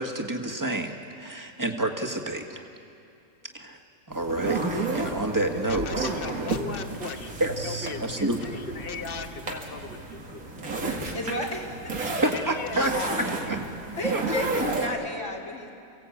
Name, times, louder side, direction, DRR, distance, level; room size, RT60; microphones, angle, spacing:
voice 1, 0.0-2.6 3.5-3.8 4.1-6.1 7.4-8.5 12.0-12.9 13.5-13.6 14.1-14.2 14.5-14.7, right 1 dB, 15° right, 3 dB, 1.6 m, -29 dB
sound 1, 4.1-14.9, right 3 dB, 85° right, 2.6 m, -32 dB
voice 2, 5.7-10.5 12.3-13.2, left 4 dB, 40° left, 6 dB, 1.4 m, -37 dB
voice 3, 11.1-11.9 13.9-15.7, left 2 dB, 60° left, 1 dB, 2.6 m, -32 dB
28.5 x 16.5 x 8.5 m, 2.6 s
omnidirectional pair, 1.5 m